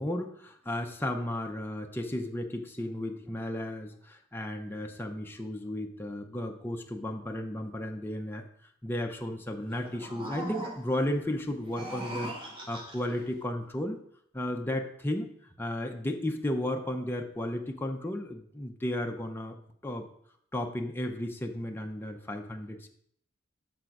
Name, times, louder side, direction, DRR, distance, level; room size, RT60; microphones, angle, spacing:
voice 1, 0.0-8.5 8.8-14.0 14.3-15.3 15.6-19.6 19.8-20.0 20.5-22.9, left 1 dB, 10° left, 3 dB, 0.6 m, -34 dB
sound 1, 9.7-11.1 11.6-13.2, right 1 dB, 25° right, 1.3 m, -40 dB
6.9 x 3.8 x 5.9 m, 0.65 s
head